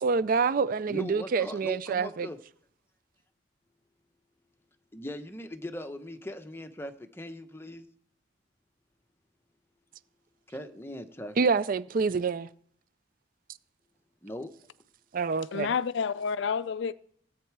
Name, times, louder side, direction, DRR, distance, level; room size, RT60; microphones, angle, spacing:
voice 1, 0.0-2.3 11.4-12.5 15.1-15.7, right 5 dB, 45° right, 0.4 m, -27 dB
voice 2, 0.9-2.4 4.9-7.9 10.5-11.5 14.2-14.5, left 1 dB, 10° left, 0.8 m, -40 dB
voice 3, 15.5-16.9, left 6 dB, 65° left, 0.4 m, -29 dB
16.5 x 8.2 x 4.6 m
head